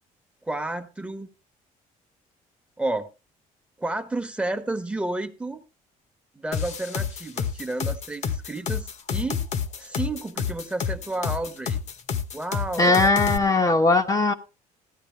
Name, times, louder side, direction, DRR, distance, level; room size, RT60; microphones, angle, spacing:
voice 1, 0.4-1.3 2.8-3.1 3.8-5.6 6.3-9.4 9.8-11.8 12.3-13.1, right 2 dB, 10° right, 1.2 m, -31 dB
sound 1, 6.5-13.4, left 7 dB, 55° left, 1.2 m, -28 dB
voice 2, 12.8-14.3, left 3 dB, 25° left, 1.0 m, -19 dB
15.0 x 11.0 x 3.4 m
cardioid pair, 125°, 15 cm